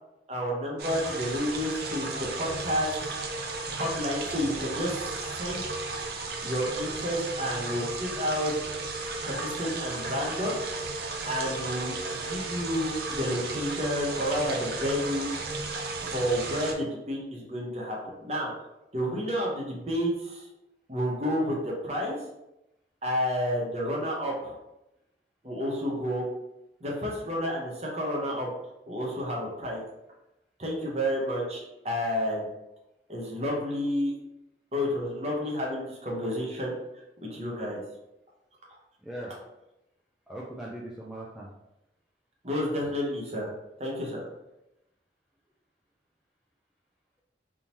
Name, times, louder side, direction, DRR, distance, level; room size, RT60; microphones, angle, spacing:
voice 1, 0.3-2.9 3.7-5.7 6.4-8.6 9.2-10.5 11.2-15.3 16.0-18.5 18.9-20.5 20.9-22.2 23.0-24.6 25.4-26.3 26.8-28.5 28.9-29.8 30.6-32.5 33.1-34.1 34.7-36.7 37.2-37.8 42.4-43.5 43.8-44.3, equal, 35° right, -2 dB, 0.9 m, -30 dB
sound 1, 0.8-16.7, right 3 dB, 60° right, 0.5 m, -34 dB
voice 2, 39.0-39.3 40.3-41.5, right 1 dB, ahead, -5 dB, 0.3 m, -40 dB
3.5 x 2.8 x 2.9 m, 0.91 s
head